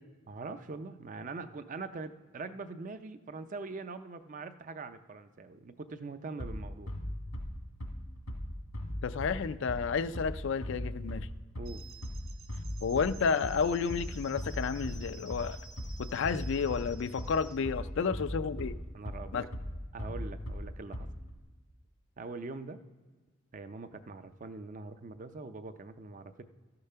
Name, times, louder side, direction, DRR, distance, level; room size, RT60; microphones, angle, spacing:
voice 1, 0.3-6.9 11.6-11.8 18.0-18.1 18.9-19.5 19.9-21.1 22.2-22.8 23.5-26.4, right 3 dB, 35° right, 11 dB, 0.4 m, -43 dB
Bass drum, 6.4-21.4, equal, 85° left, 1.8 m, -39 dB
voice 2, 9.0-11.3 12.8-15.6 16.0-18.8 19.3-19.4, left 5 dB, 60° left, 13 dB, 0.4 m, -31 dB
sound 1, 11.7-17.6, right 4 dB, 75° right, 1.5 m, -53 dB
13.0 x 6.7 x 5.6 m, 1.4 s
head